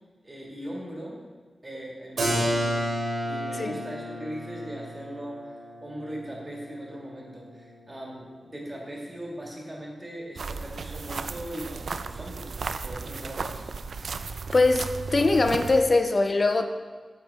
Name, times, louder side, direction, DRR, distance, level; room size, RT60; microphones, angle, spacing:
voice 1, 0.2-1.2 1.6-2.8 3.2-12.5 12.8-13.7, equal, 20° right, -3 dB, 1.7 m, -39 dB
Keyboard (musical), 2.2-7.8, equal, 85° right, 2.5 m, -32 dB
sound 1, 10.4-15.8, right 4 dB, 60° right, 0.3 m, -35 dB
voice 2, 14.5-16.7, left 3 dB, 35° left, 7 dB, 0.4 m, -22 dB
9.1 x 7.2 x 3.4 m, 1.5 s
wide cardioid pair, 170°, 0 cm